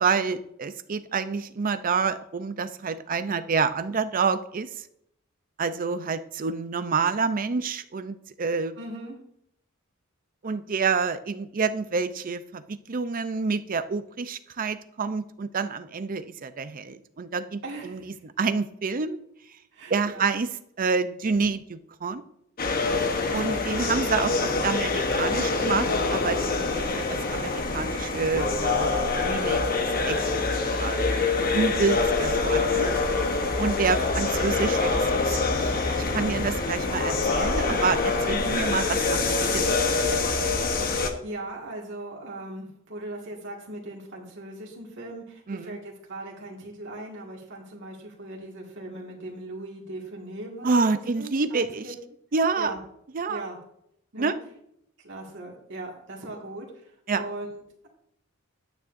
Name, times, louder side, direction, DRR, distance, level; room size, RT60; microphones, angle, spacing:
voice 1, 0.0-4.9 5.6-8.8 10.4-19.2 19.9-20.5 20.8-22.2 23.3-29.6 30.0-30.3 30.8-31.1 31.5-32.9 33.6-40.2 45.5-45.8 50.6-51.9 52.3-52.7 53.1-53.4 54.2-54.4 57.1-57.3, right 4 dB, 40° right, 12 dB, 0.5 m, -28 dB
voice 2, 8.8-9.2 17.6-18.0 19.7-20.3 23.5-24.0 32.5-33.0 33.5-34.7 36.1-36.5 40.8-51.9 52.6-52.8 53.3-53.6 54.1-54.3 55.0-56.7 57.1-57.9, right 2 dB, 60° right, -2 dB, 2.0 m, -39 dB
sound 1, 22.6-41.1, left 3 dB, 45° left, 1.0 m, -25 dB
11.5 x 9.3 x 2.6 m, 0.74 s
head